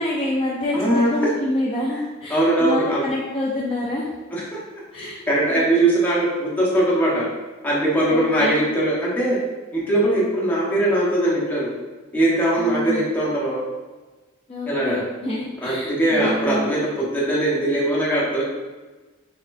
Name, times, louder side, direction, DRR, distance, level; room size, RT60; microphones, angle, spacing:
voice 1, 0.0-4.1 4.9-5.2 5.5-5.6 8.0-8.6 12.6-13.1 14.5-16.7, left 1 dB, 25° left, -5 dB, 0.5 m, -27 dB
voice 2, 0.7-1.1 2.3-3.1 4.3-7.2 7.6-9.4 9.7-11.7 12.1-13.6 14.6-15.0 15.6-18.4, right 1 dB, 10° left, -6 dB, 1.0 m, -21 dB
4.2 x 3.6 x 2.5 m, 1.2 s
head